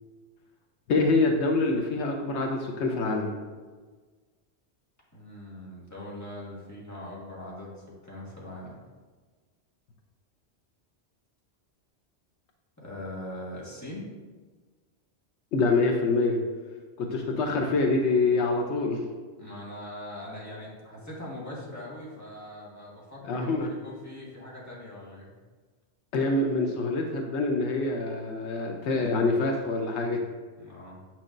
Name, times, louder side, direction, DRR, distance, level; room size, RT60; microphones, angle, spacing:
voice 1, 0.9-3.3 15.5-16.4 17.0-19.0 23.2-23.7 26.1-30.2, left 3 dB, 80° left, 2 dB, 1.0 m, -25 dB
voice 2, 5.1-8.8 12.8-14.1 19.2-25.3 30.6-31.0, left 1 dB, 15° left, -6 dB, 1.7 m, -41 dB
8.3 x 5.9 x 2.5 m, 1.4 s
omnidirectional pair, 1.1 m